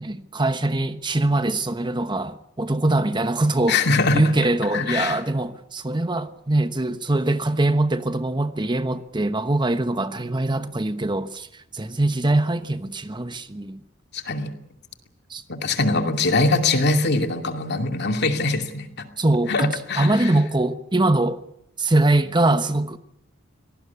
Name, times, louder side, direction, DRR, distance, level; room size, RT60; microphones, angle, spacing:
voice 1, 0.0-3.8 4.1-13.8 15.3-15.4 19.2-21.4 21.8-23.0, right 2 dB, 25° right, 1.1 m, -22 dB
voice 2, 3.7-4.2 4.7-5.2 14.1-14.5 15.5-18.9 19.5-20.3, left 3 dB, 55° left, 2.6 m, -22 dB
24.0 x 19.0 x 8.5 m
head